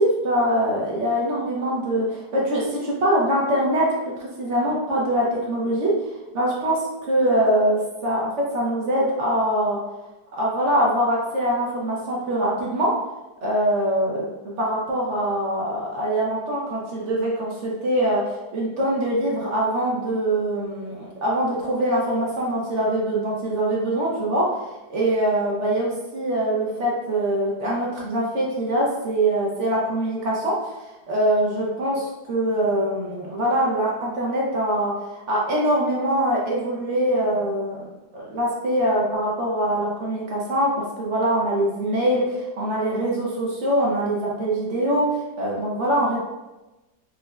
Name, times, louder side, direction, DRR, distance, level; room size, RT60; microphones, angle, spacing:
voice 1, 0.0-3.9 4.2-5.9 6.3-9.8 10.4-12.9 13.4-14.3 14.6-24.4 24.9-30.5 31.1-46.2, right 1 dB, 60° right, -4 dB, 0.9 m, -23 dB
5.0 x 2.1 x 2.3 m, 1.0 s
omnidirectional pair, 1.7 m